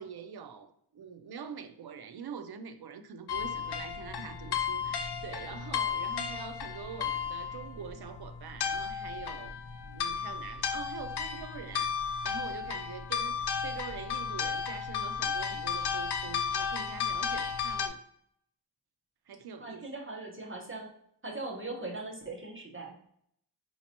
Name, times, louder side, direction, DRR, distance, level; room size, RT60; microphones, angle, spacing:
voice 1, 0.0-9.5 9.9-18.0 19.3-19.8, right 7 dB, 65° right, 0.5 m, -44 dB
sound 1, 3.3-17.9, left 6 dB, 65° left, 0.5 m, -34 dB
voice 2, 19.6-20.9 21.2-22.9, right 2 dB, 30° right, 0.9 m, -40 dB
5.1 x 2.9 x 2.8 m
wide cardioid pair, 75°, 42 cm